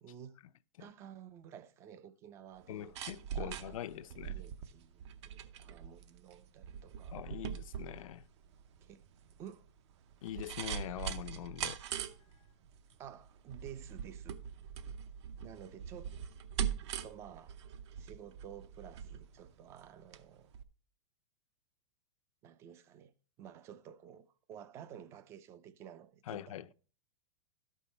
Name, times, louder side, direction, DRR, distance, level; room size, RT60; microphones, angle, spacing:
voice 1, 0.0-0.4 0.8-2.9 3.4-7.2 8.8-9.0 9.4-9.7 13.0-14.4 15.4-16.2 17.0-17.6 18.0-20.5 22.4-23.1 23.4-26.7, right 9 dB, 15° right, 0.3 m, -52 dB
sound 1, 2.6-20.2 20.5-20.6, right 8 dB, 55° right, 0.7 m, -42 dB
voice 2, 2.7-4.4 7.1-8.3 10.2-11.8 26.3-26.7, left 12 dB, 75° left, 0.5 m, -43 dB
12.5 x 5.5 x 4.2 m
supercardioid pair, 165°, 17 cm